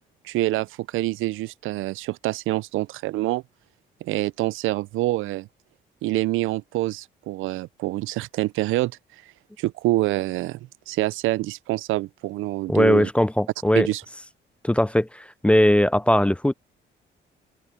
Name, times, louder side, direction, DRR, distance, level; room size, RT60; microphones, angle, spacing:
voice 1, 0.2-3.4 4.0-5.5 6.0-8.9 9.6-10.6 10.9-13.1 13.7-14.0, right 18 dB, 90° right, 0.5 m, -26 dB
voice 2, 12.7-13.9 14.6-16.5, left 1 dB, 5° left, 0.4 m, -19 dB
open air
cardioid pair, 90°, 20 cm